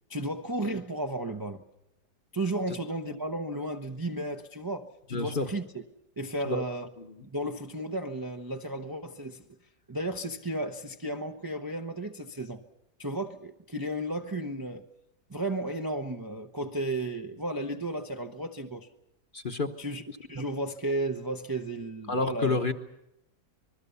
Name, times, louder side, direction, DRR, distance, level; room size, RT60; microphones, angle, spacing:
voice 1, 0.1-1.6 2.3-5.8 6.2-6.9 7.2-9.4 9.9-12.6 13.0-14.9 15.3-18.9 19.8-20.0 20.3-22.6, right 1 dB, 20° right, 0.6 m, -33 dB
voice 2, 5.1-5.5 6.5-6.6 19.3-19.7 22.1-22.7, left 3 dB, 35° left, 1.1 m, -28 dB
26.0 x 21.0 x 6.9 m
omnidirectional pair, 1.8 m